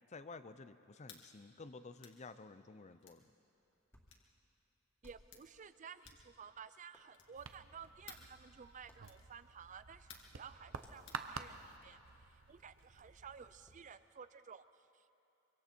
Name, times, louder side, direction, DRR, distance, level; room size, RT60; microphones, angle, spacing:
voice 1, 0.1-3.2, left 3 dB, 35° left, 12 dB, 0.6 m, -52 dB
sound 1, 1.0-1.3 2.0-2.2 3.0-3.2 4.1-4.3 5.0-5.4 6.0-6.4 7.1-7.4 8.1-8.3 9.0-9.3 10.1-10.4 11.1-11.2, left 6 dB, 60° left, 2.2 m, -57 dB
Hands, 3.5-13.9, equal, 15° left, 2.4 m, -71 dB
voice 2, 5.0-12.0 12.5-14.6, right 6 dB, 35° right, 13 dB, 0.5 m, -54 dB
sound 2, 7.4-13.9, right 5 dB, 70° right, 0.9 m, -51 dB
24.5 x 24.5 x 4.5 m, 2.8 s
head